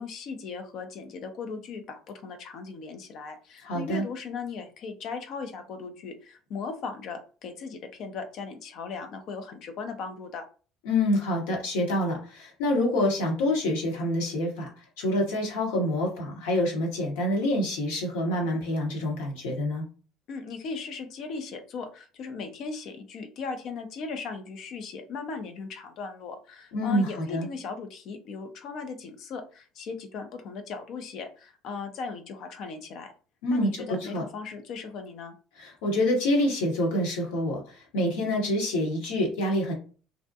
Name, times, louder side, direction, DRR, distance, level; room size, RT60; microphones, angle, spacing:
voice 1, 0.0-10.5 20.3-33.1 33.5-35.3, left 4 dB, 55° left, 7 dB, 0.5 m, -38 dB
voice 2, 3.6-4.0 10.8-14.7 15.0-19.8 26.7-27.5 33.4-34.2 35.6-39.7, left 1 dB, 70° left, 0 dB, 0.9 m, -27 dB
2.6 x 2.0 x 2.6 m, 0.38 s
hypercardioid pair, 60°, 0 cm